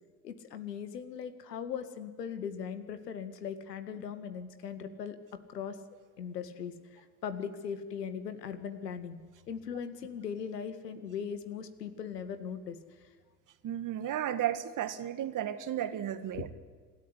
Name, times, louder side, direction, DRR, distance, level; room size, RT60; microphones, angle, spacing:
voice 1, 0.2-5.2 5.5-5.8 6.2-9.2 9.5-13.1 16.3-16.5, left 7 dB, 80° left, 10 dB, 1.9 m, -39 dB
voice 2, 13.6-16.5, right 11 dB, 40° right, 12 dB, 1.8 m, -33 dB
26.0 x 13.5 x 9.8 m, 1.5 s
figure-of-eight pair, 70°, 48 cm